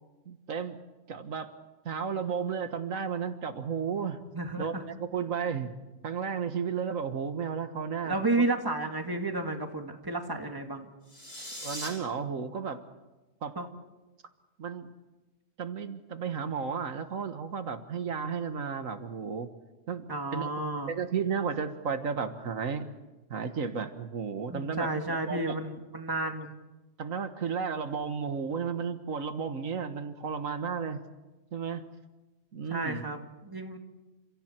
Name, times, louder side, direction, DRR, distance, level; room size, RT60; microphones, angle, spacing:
voice 1, 0.3-0.8 1.1-1.5 1.9-4.2 4.6-5.7 6.0-8.2 11.6-12.8 13.4-13.5 14.6-14.9 15.6-19.5 19.9-20.1 20.3-20.5 20.9-22.9 23.3-24.9 25.3-25.6 27.0-31.0 31.5-31.8 32.5-33.0, right 6 dB, 85° right, 8 dB, 1.8 m, -33 dB
voice 2, 4.3-4.8 8.0-10.9 13.6-13.7 20.1-20.9 24.5-26.6 32.7-33.8, right 2 dB, 15° right, 4 dB, 2.2 m, -32 dB
sound 1, 11.0-11.9, left 1 dB, 25° left, 6.2 m, -40 dB
30.0 x 27.5 x 4.5 m, 1.1 s
omnidirectional pair, 1.4 m